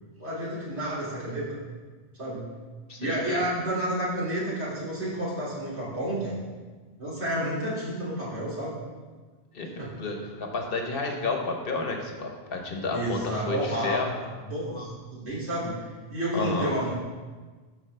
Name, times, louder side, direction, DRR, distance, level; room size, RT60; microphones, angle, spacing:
voice 1, 0.2-1.6 2.2-2.4 3.0-6.4 7.0-8.8 9.8-9.9 12.9-14.0 14.5-15.8 16.1-16.9, right 1 dB, 80° right, -8 dB, 2.9 m, -30 dB
voice 2, 2.9-3.4 9.5-9.7 10.0-14.2 16.3-16.8, left 3 dB, 60° left, 2 dB, 1.2 m, -31 dB
13.0 x 4.8 x 3.3 m, 1.4 s
omnidirectional pair, 1.1 m